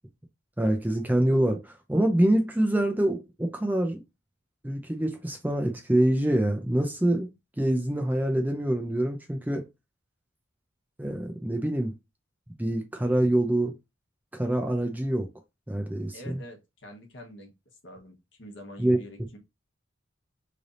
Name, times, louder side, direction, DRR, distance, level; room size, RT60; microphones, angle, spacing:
voice 1, 0.6-4.0 4.6-7.3 7.6-9.7 11.0-11.9 12.6-13.7 14.3-15.3 15.7-16.4 18.8-19.0, right 1 dB, 10° right, 0.4 m, -25 dB
voice 2, 16.1-17.5 17.8-19.4, equal, 60° left, 1.2 m, -45 dB
3.3 x 2.7 x 3.7 m
head